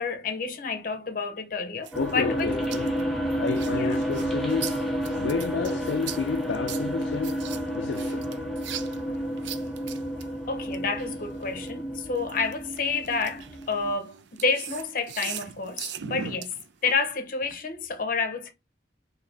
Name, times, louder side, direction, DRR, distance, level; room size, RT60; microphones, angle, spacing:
voice 1, 0.0-2.8 3.7-4.0 10.5-16.5 16.8-18.5, left 4 dB, 50° left, 0.7 m, -29 dB
sound 1, 1.8-11.7 12.1-17.2, right 9 dB, 90° right, 0.4 m, -40 dB
sound 2, 1.9-13.9, equal, ahead, 0.7 m, -30 dB
voice 2, 2.0-3.0 3.4-4.8 5.2-8.3, left 5 dB, 85° left, 0.4 m, -31 dB
3.2 x 2.7 x 3.9 m
head